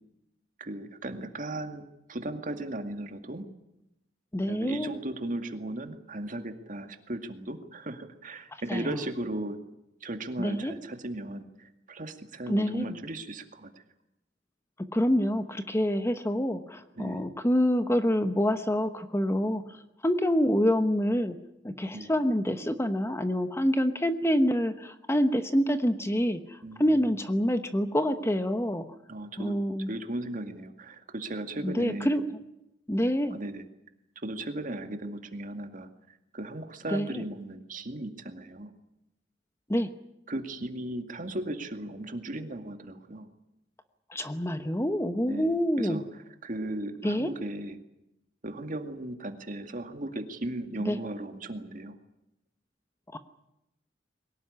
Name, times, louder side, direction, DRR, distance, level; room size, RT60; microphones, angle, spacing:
voice 1, 0.6-3.5 4.5-9.6 10.0-13.8 17.0-17.4 21.9-22.1 26.6-27.1 29.1-29.6 29.9-32.2 33.3-33.7 34.2-38.7 40.3-43.3 45.3-47.8 48.4-52.0, right 1 dB, 45° right, 7 dB, 2.1 m, -37 dB
voice 2, 4.3-5.0 8.7-8.9 10.4-10.7 12.5-13.0 14.9-19.6 20.0-21.4 21.6-28.8 29.4-29.9 31.6-32.2 32.9-33.4 36.9-37.2 39.7-39.9 44.1-46.0 47.0-47.3 50.9-51.0 53.1-53.2, equal, 15° left, 9 dB, 1.1 m, -26 dB
22.5 x 18.0 x 9.9 m, 0.86 s
head